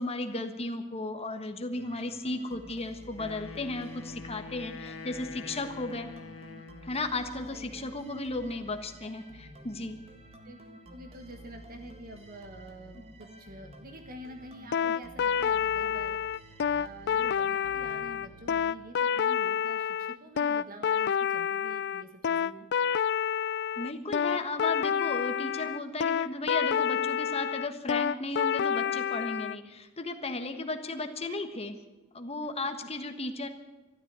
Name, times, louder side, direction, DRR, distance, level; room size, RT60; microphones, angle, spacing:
voice 1, 0.0-6.1 6.8-10.0 23.8-31.8 32.1-33.5, left 2 dB, 30° left, 7 dB, 1.4 m, -35 dB
sound 1, 1.7-19.3, right 1 dB, 30° right, 1.9 m, -51 dB
Wind instrument woodwind instrument, 3.1-7.1, left 4 dB, 75° left, 0.8 m, -45 dB
voice 2, 7.5-7.9 10.4-10.6 10.9-16.2 16.7-22.7, right 1 dB, 45° right, 5 dB, 1.4 m, -47 dB
sound 2, 14.7-29.6, left 8 dB, 55° left, 0.4 m, -28 dB
13.0 x 12.0 x 8.2 m, 1.2 s
head